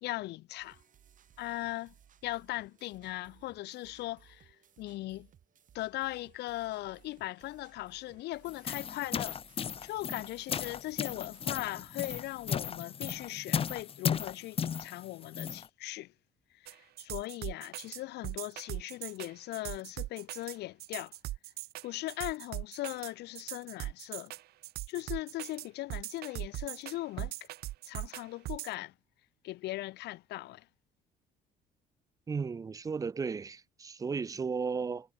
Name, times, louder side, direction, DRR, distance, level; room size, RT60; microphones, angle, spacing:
voice 1, 0.0-0.8 1.4-1.9 2.2-5.3 5.7-9.4 9.8-16.1 16.5-21.1 21.8-24.3 24.9-27.5 27.9-28.9 29.4-30.7, left 17 dB, 80° left, 2.3 m, -39 dB
sound 1, 0.6-12.6, right 9 dB, 50° right, 7.4 m, -62 dB
sound 2, 8.5-15.7, left 7 dB, 35° left, 0.7 m, -35 dB
sound 3, 16.7-28.7, right 16 dB, 70° right, 0.6 m, -40 dB
voice 2, 32.3-35.1, right 5 dB, 20° right, 0.4 m, -35 dB
cardioid pair, 110°, 17 cm